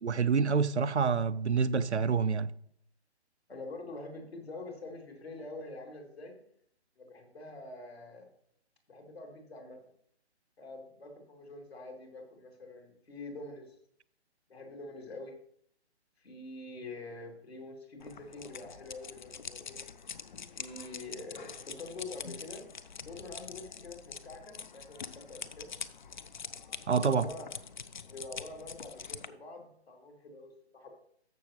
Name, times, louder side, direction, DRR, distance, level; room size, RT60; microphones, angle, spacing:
voice 1, 0.0-2.5 26.9-27.3, right 5 dB, 80° right, 0.6 m, -27 dB
voice 2, 3.5-6.4 7.0-8.3 8.9-9.8 10.6-13.7 14.5-15.3 16.2-19.8 20.5-22.6 23.0-25.7 26.9-27.5 28.0-30.9, left 2 dB, 65° left, 2.9 m, -45 dB
sound 1, 18.0-29.3, left 6 dB, 45° left, 0.5 m, -45 dB
13.5 x 6.2 x 3.0 m
figure-of-eight pair, 140°, 33 cm